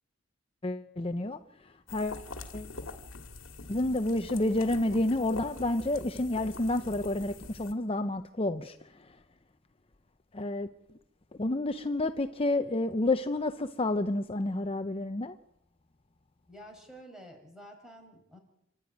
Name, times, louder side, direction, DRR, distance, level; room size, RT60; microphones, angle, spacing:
voice 1, 0.6-1.4 1.9-2.3 2.5-2.7 3.7-8.8 9.0-9.2 10.3-10.7 11.4-15.3, left 2 dB, 30° left, 0.7 m, -29 dB
sound 1, 1.9-7.7, left 3 dB, 70° left, 2.2 m, -44 dB
voice 2, 16.5-18.4, equal, 5° right, 5.5 m, -50 dB
29.5 x 12.5 x 9.2 m
head